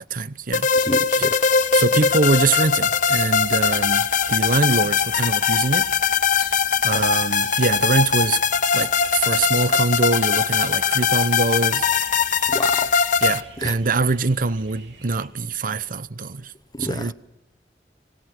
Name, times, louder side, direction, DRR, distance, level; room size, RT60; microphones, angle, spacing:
voice 1, 0.1-0.7 1.7-5.9 6.8-8.4 8.7-11.9 13.2-16.5 16.8-17.1, right 3 dB, 50° right, 0.8 m, -23 dB
sound 1, 0.5-13.4, left 6 dB, 50° left, 1.1 m, -20 dB
voice 2, 0.7-1.4 10.8-11.1 12.5-12.9 13.6-13.8 16.7-17.1, left 2 dB, 25° left, 0.9 m, -30 dB
sound 2, 1.4-15.3, right 3 dB, 85° right, 3.4 m, -46 dB
25.5 x 19.5 x 6.0 m
head